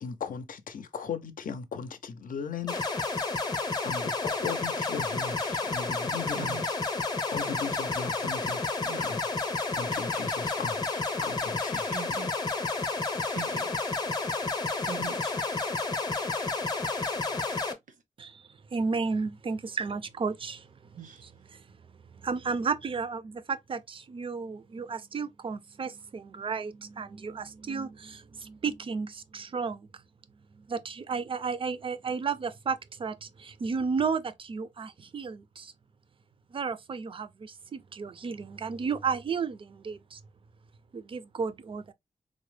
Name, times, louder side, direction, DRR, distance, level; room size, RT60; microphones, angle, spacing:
voice 1, 0.0-2.9 3.4-6.8 7.3-8.6 9.0-9.5 9.7-11.9, left 6 dB, 85° left, 0.5 m, -38 dB
sound 1, 2.7-17.7, left 3 dB, 30° left, 0.6 m, -31 dB
voice 2, 6.4-6.7 8.8-9.0 11.7-12.5 13.3-14.3 14.8-15.4 16.4-16.6 17.2-17.4 21.0-21.2, right 7 dB, 80° right, 0.7 m, -43 dB
voice 3, 18.2-20.7 21.5-21.6 22.2-29.9 30.6-35.7 36.5-40.2 40.9-41.9, right 5 dB, 40° right, 0.4 m, -33 dB
3.7 x 2.0 x 3.1 m
wide cardioid pair, 160°, 14 cm